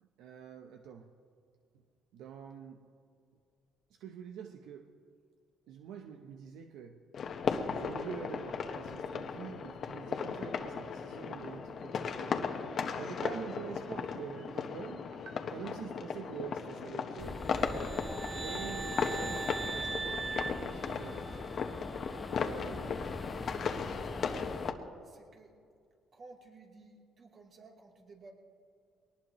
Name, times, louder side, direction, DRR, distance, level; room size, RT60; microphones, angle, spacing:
voice 1, 0.0-1.1 2.1-2.8 3.9-4.9 5.7-7.0 7.7-12.6 12.9-17.4 18.3-21.2 22.4-23.0, right 7 dB, 80° right, 4 dB, 0.9 m, -46 dB
sound 1, 7.1-24.7, left 6 dB, 55° left, 1.3 m, -36 dB
sound 2, 17.2-24.7, left 1 dB, 10° left, 0.8 m, -44 dB
sound 3, 17.5-21.6, right 4 dB, 25° right, 0.5 m, -40 dB
voice 2, 23.5-24.6 25.0-25.5 26.1-28.3, right 3 dB, 45° right, -1 dB, 3.4 m, -56 dB
22.0 x 19.0 x 3.2 m, 2.2 s
cardioid pair, 95°, 0 cm